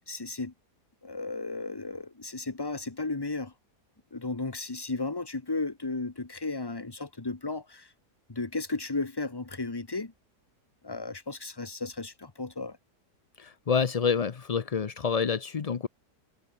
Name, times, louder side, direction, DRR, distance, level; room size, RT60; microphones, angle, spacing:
voice 1, 0.1-0.5 1.0-3.5 4.1-7.9 8.3-10.1 10.8-12.8, left 3 dB, 15° left, 1.1 m, -34 dB
voice 2, 13.4-15.9, left 6 dB, 60° left, 0.3 m, -28 dB
omnidirectional pair, 1.8 m